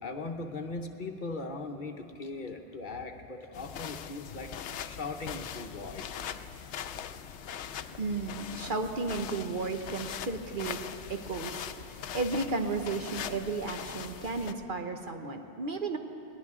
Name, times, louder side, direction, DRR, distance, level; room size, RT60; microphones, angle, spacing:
voice 1, 0.0-6.1 7.4-7.6, left 3 dB, 50° left, 4 dB, 1.0 m, -39 dB
sound 1, 3.5-14.5, left 8 dB, 85° left, 0.9 m, -41 dB
voice 2, 8.0-10.8 11.1-16.0, right 3 dB, 50° right, 5 dB, 1.0 m, -34 dB
21.0 x 18.0 x 3.7 m, 3.0 s
omnidirectional pair, 1.2 m